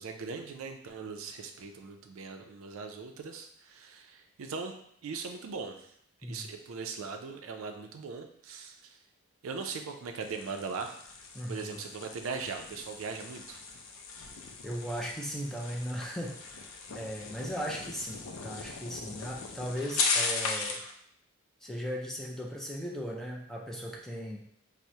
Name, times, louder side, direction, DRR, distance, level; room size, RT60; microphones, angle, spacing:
voice 1, 0.0-4.7 5.0-5.9 6.3-9.0 9.4-10.9 11.5-13.6, right 4 dB, 70° right, 5 dB, 0.4 m, -40 dB
sound 1, 10.2-20.9, left 4 dB, 70° left, 0.4 m, -37 dB
voice 2, 11.3-11.8 14.6-16.7 16.9-20.8 21.6-24.4, equal, ahead, -2 dB, 0.3 m, -37 dB
4.5 x 2.0 x 2.7 m, 0.67 s
head